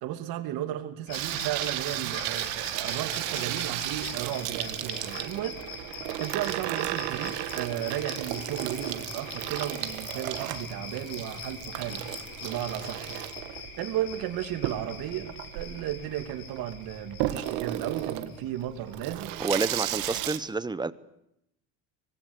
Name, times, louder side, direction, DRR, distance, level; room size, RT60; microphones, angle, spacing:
voice 1, 0.0-5.6 5.9-12.0 12.4-13.2 13.8-19.3, right 11 dB, 70° right, 7 dB, 2.9 m, -34 dB
sound 1, 1.1-19.1, left 5 dB, 70° left, 7.9 m, -43 dB
Water tap faucet / Sink (filling or washing), 1.1-20.4, right 15 dB, 90° right, 1.7 m, -34 dB
voice 2, 19.4-20.9, right 3 dB, 10° right, 15 dB, 0.9 m, -29 dB
24.5 x 19.5 x 8.3 m, 0.81 s
cardioid pair, 120°, 37 cm